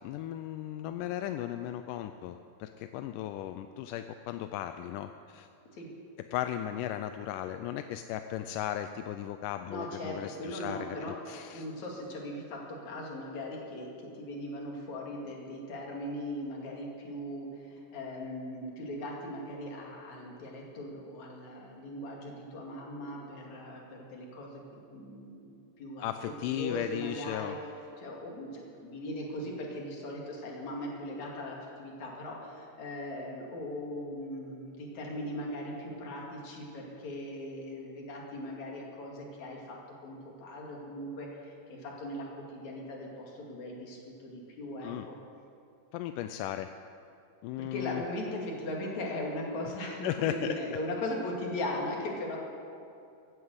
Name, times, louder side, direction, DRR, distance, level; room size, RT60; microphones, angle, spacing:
voice 1, 0.0-5.5 6.3-11.0 11.3-11.7 26.0-27.6 44.8-45.1 45.9-46.7 47.4-48.0 50.0-50.3, left 12 dB, 85° left, 8 dB, 2.1 m, -36 dB
voice 2, 9.7-26.1 26.5-27.6 28.0-39.8 40.0-45.2 47.6-52.4, left 1 dB, 60° left, -1 dB, 3.6 m, -39 dB
15.5 x 9.7 x 8.0 m, 2.5 s
omnidirectional pair, 3.7 m